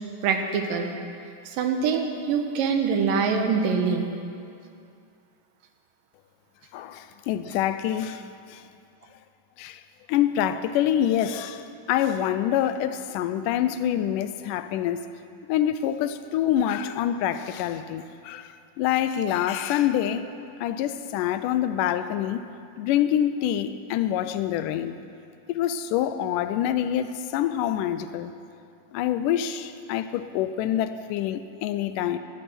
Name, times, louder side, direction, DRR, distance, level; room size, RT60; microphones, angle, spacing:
voice 1, 0.2-0.9 1.5-4.1, right 5 dB, 85° right, 5 dB, 2.7 m, -24 dB
voice 2, 6.7-8.2 8.5-8.6 9.6-9.8 10.1-15.0 15.5-20.3 20.6-22.4 22.8-25.0 25.5-28.3 28.9-32.2, left 11 dB, 80° left, 11 dB, 2.1 m, -26 dB
12.5 x 8.8 x 9.4 m, 2.5 s
omnidirectional pair, 3.9 m